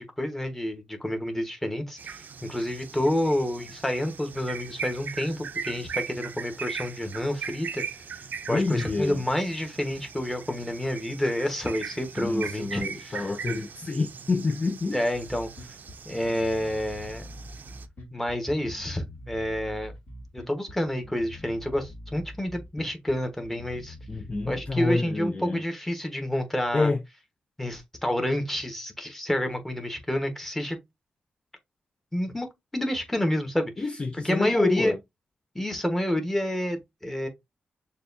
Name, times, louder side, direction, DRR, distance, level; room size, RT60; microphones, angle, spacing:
voice 1, 0.0-7.8 8.5-13.2 14.9-15.5 16.0-17.2 18.1-19.9 20.3-24.0 24.5-26.9 27.6-30.8 32.1-32.5 32.7-33.7 34.2-34.9 35.5-37.3, left 1 dB, 10° left, 1.1 m, -29 dB
sound 1, 2.0-17.9, right 6 dB, 60° right, 0.5 m, -40 dB
voice 2, 8.5-9.2 12.2-15.0 24.1-25.6 26.7-27.0 33.8-35.0, left 3 dB, 30° left, 0.4 m, -27 dB
Bass guitar, 15.3-24.7, left 1 dB, 55° left, 2.2 m, -44 dB
6.5 x 2.4 x 2.6 m
cardioid pair, 90°, 3 cm